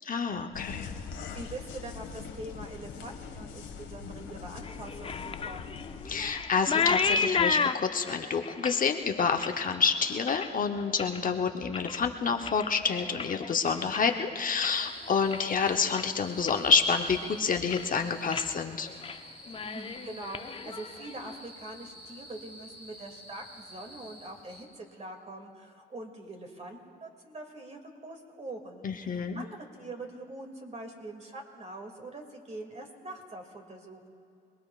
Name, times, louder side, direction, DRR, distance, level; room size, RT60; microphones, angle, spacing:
voice 1, 0.0-0.9 6.1-18.9 28.8-29.4, left 5 dB, 45° left, 4 dB, 0.9 m, -28 dB
sound 1, 0.5-6.3, left 6 dB, 90° left, 1.7 m, -42 dB
voice 2, 1.1-5.8 19.6-34.1, right 2 dB, 35° right, 2 dB, 2.5 m, -43 dB
sound 2, 4.6-11.3 11.6-12.1 12.4-14.9 15.2-15.6 15.9-16.1 16.5-17.3 17.6-17.9 18.3-18.5 18.8-19.2 19.5-21.3, left 5 dB, 30° left, 0.5 m, -33 dB
sound 3, 14.7-24.6, equal, 55° right, 3.3 m, -49 dB
27.0 x 20.0 x 2.4 m, 2.6 s
cardioid pair, 90°, 20 cm